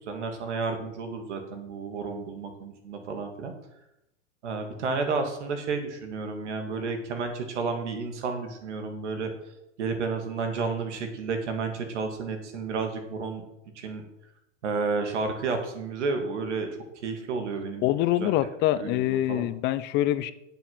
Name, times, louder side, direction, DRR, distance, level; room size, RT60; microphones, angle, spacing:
voice 1, 0.0-3.5 4.4-9.3 9.8-13.4 13.7-14.0 14.6-16.7 17.0-17.9 18.2-18.3 18.7-19.5, right 4 dB, 75° right, 6 dB, 2.7 m, -31 dB
voice 2, 17.8-20.3, left 13 dB, 30° left, 14 dB, 0.6 m, -25 dB
10.5 x 7.1 x 5.8 m, 0.83 s
hypercardioid pair, 130°, 35 cm